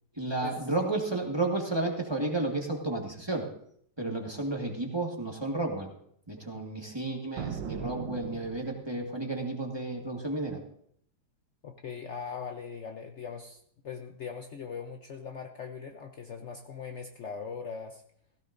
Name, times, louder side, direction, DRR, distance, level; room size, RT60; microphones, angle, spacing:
voice 1, 0.2-3.5 4.0-5.9 6.3-10.6, right 2 dB, 15° right, 1 dB, 1.4 m, -32 dB
sound 1, 7.4-9.1, right 8 dB, 70° right, 1.4 m, -39 dB
voice 2, 11.6-18.0, left 6 dB, 80° left, 4 dB, 0.6 m, -40 dB
16.5 x 16.0 x 2.6 m, 0.66 s
omnidirectional pair, 2.2 m